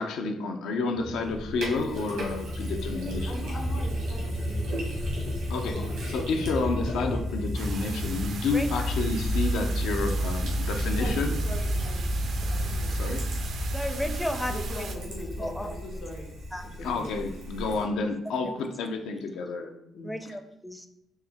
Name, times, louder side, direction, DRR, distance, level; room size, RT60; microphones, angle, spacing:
voice 1, 0.0-3.4 5.5-11.4 12.9-13.3 16.8-19.7, left 3 dB, 85° left, 4 dB, 0.4 m, -30 dB
sound 1, 1.0-18.0, equal, 45° left, 0.6 m, -31 dB
Sink (filling or washing), 1.2-17.8, equal, 90° right, 1.3 m, -40 dB
voice 2, 3.3-4.9 5.6-6.6 11.0-11.2 11.4-12.0 12.5-13.0 14.4-16.3 16.8-17.2 19.9-20.1, left 1 dB, 65° left, -1 dB, 1.4 m, -41 dB
sound 2, 7.5-15.0, right 5 dB, 60° right, 0.4 m, -40 dB
voice 3, 8.5-8.9 13.7-15.1 15.4-15.8 16.5-16.7 18.4-18.6 20.0-20.9, left 1 dB, 5° left, 6 dB, 0.4 m, -34 dB
4.2 x 2.1 x 3.5 m, 0.83 s
cardioid pair, 90°, 0 cm